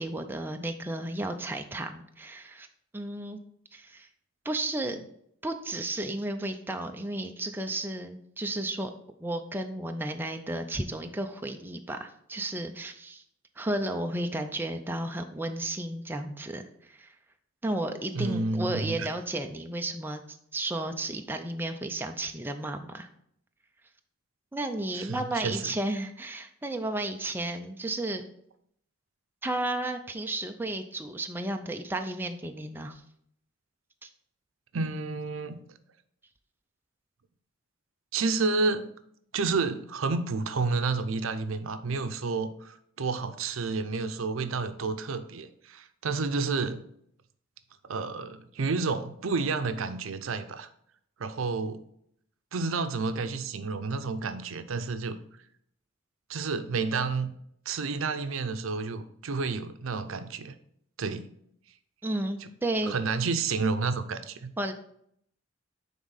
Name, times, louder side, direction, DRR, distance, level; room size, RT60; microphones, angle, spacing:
voice 1, 0.0-2.7 2.9-3.4 3.7-4.1 4.5-5.0 5.4-8.9 9.2-13.2 13.6-17.2 17.6-23.1 24.5-28.3 29.4-33.0 34.0-34.1 62.0-62.9 64.6-64.7, right 1 dB, 10° right, 5 dB, 0.4 m, -33 dB
voice 2, 18.1-19.1 24.9-25.6 34.7-35.6 38.1-38.9 39.3-46.8 47.8-50.7 51.2-51.8 52.5-55.2 56.3-57.3 57.7-60.5 61.0-61.3 62.4-62.5 62.9-64.5, right 4 dB, 85° right, 10 dB, 0.6 m, -30 dB
9.5 x 3.6 x 4.0 m, 0.70 s
head